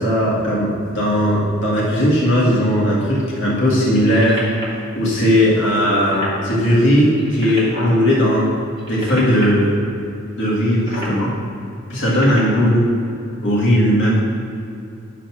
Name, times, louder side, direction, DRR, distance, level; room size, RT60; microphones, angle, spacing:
voice 1, 0.0-4.4 4.9-8.5 8.9-9.8 10.3-11.3 11.9-12.8 13.4-14.2, equal, 60° left, -7 dB, 1.8 m, -17 dB
sound 1, 4.0-4.8 5.5-5.6 5.8-6.4 7.1-8.0 8.7-9.4 10.7-11.2 11.9-12.8 13.5-13.6, equal, 25° right, 1.9 m, -30 dB
11.0 x 4.0 x 5.9 m, 2.6 s
head